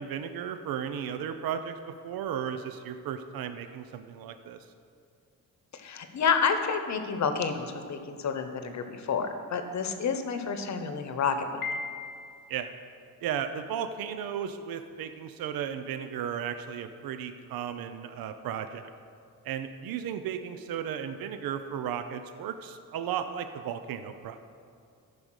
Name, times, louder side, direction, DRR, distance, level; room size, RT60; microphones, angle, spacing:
voice 1, 0.0-4.6 12.5-12.7 13.2-18.9 19.4-24.4, right 8 dB, 80° right, 9 dB, 0.6 m, -35 dB
voice 2, 5.7-11.6, left 6 dB, 50° left, 8 dB, 1.0 m, -29 dB
Piano, 11.6-12.6, left 4 dB, 85° left, 0.9 m, -37 dB
14.0 x 5.3 x 6.3 m, 2.3 s
cardioid pair, 120°, 35 cm